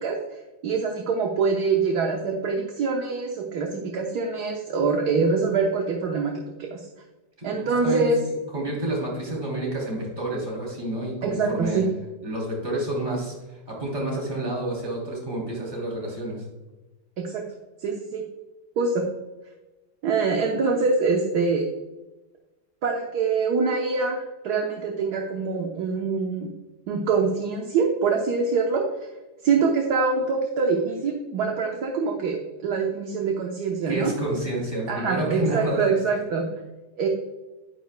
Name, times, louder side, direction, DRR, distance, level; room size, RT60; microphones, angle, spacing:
voice 1, 0.0-6.8 7.4-8.2 11.2-11.9 17.2-17.4 17.8-18.3 18.8-19.0 20.0-21.6 22.8-26.5 26.9-28.8 29.4-34.1 34.9-36.5 37.0-37.1, right 4 dB, 60° right, 1 dB, 1.4 m, -24 dB
voice 2, 7.4-8.1 8.5-11.8 12.2-13.3 13.7-16.4 33.9-35.8, right 1 dB, 25° right, -3 dB, 3.2 m, -29 dB
10.5 x 9.6 x 2.2 m, 1.1 s
omnidirectional pair, 2.1 m